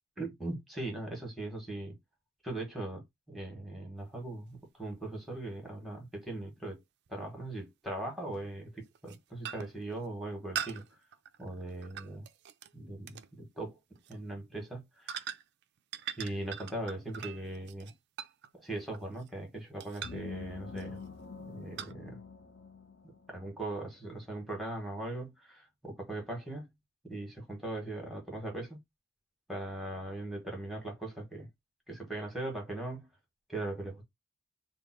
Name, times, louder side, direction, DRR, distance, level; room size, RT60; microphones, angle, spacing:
voice 1, 0.2-2.0 2.4-6.8 7.1-10.8 11.4-12.3 12.7-13.8 14.1-15.2 16.2-17.9 18.5-21.0 21.4-22.2 23.3-26.7 27.0-28.8 29.5-31.5 31.9-33.1 33.5-34.0, right 2 dB, ahead, 1.4 m, -39 dB
sound 1, 4.5-4.6 7.1-7.2 8.3-8.5 8.9-9.2 9.4-9.8 10.5-12.7 13.1-13.3 13.9-14.2 15.1-15.6 15.9-19.4 19.8-20.3 20.8-21.1 21.8-21.9, right 9 dB, 50° right, 0.3 m, -42 dB
sound 2, 20.0-23.6, left 5 dB, 50° left, 0.5 m, -46 dB
3.5 x 2.1 x 4.4 m
head